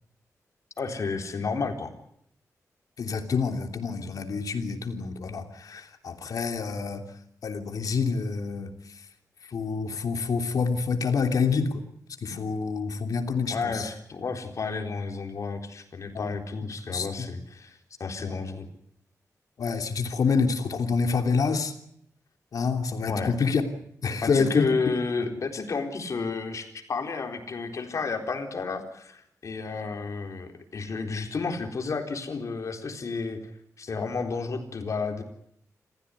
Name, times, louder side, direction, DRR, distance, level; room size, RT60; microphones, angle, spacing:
voice 1, 0.8-1.9 13.5-18.7 23.1-23.3 24.2-33.4 33.8-35.2, left 4 dB, 60° left, 5 dB, 4.2 m, -31 dB
voice 2, 3.0-7.0 7.4-9.0 9.4-11.8 12.2-13.9 16.1-16.4 16.9-17.3 18.2-18.4 19.6-21.7 22.5-23.6 24.0-24.7, left 5 dB, 80° left, 6 dB, 3.1 m, -27 dB
27.5 x 16.0 x 9.8 m, 0.72 s
wide cardioid pair, 110°, 6 cm